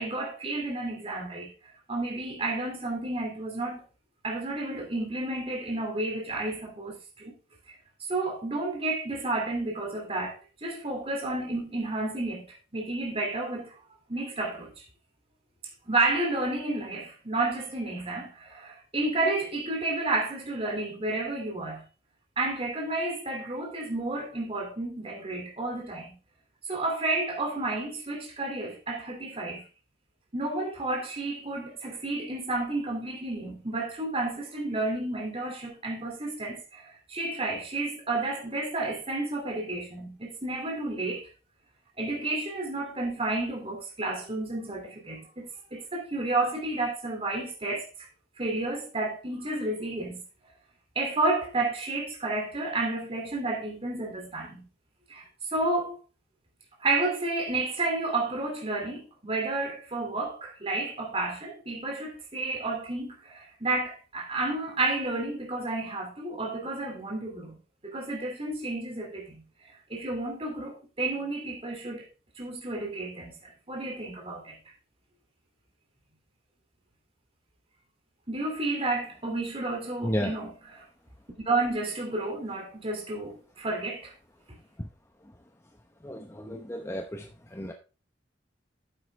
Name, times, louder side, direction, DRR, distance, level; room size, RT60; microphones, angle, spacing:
voice 1, 0.0-1.5 1.9-3.8 4.2-7.3 8.1-13.7 14.1-14.8 15.9-21.8 22.4-26.2 26.7-29.6 30.3-41.3 42.0-48.1 48.4-50.2 50.9-54.7 55.1-56.0 56.8-67.6 67.8-69.4 69.7-72.1 72.4-74.6 78.3-80.5 81.4-84.1, right 2 dB, 30° right, 3.0 m, -31 dB
voice 2, 80.0-80.4 84.8-84.9 85.2-85.5 86.0-87.7, equal, 15° left, 0.8 m, -33 dB
9.8 x 7.9 x 3.6 m
head